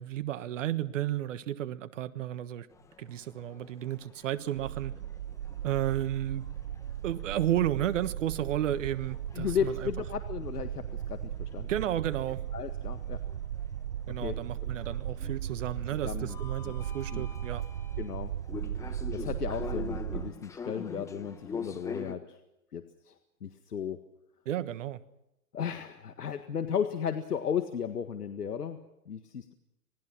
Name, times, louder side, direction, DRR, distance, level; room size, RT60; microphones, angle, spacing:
voice 1, 0.0-2.7 3.0-4.9 5.6-6.4 7.0-9.9 11.7-12.4 14.1-17.6 24.4-25.0, right 12 dB, 55° right, 1.5 m, -32 dB
sound 1, 2.7-22.1, left 5 dB, 5° left, 0.8 m, -46 dB
sound 2, 4.6-20.3, right 10 dB, 75° right, 1.2 m, -37 dB
voice 2, 9.3-11.7 12.5-13.2 14.2-14.7 15.2-15.4 15.8-16.4 16.6-16.7 17.1-17.3 18.0-18.3 19.1-22.4 22.7-23.1 23.4-24.0 25.5-29.5, left 8 dB, 85° left, 1.8 m, -35 dB
26.0 x 20.0 x 6.1 m
hypercardioid pair, 135°, 46 cm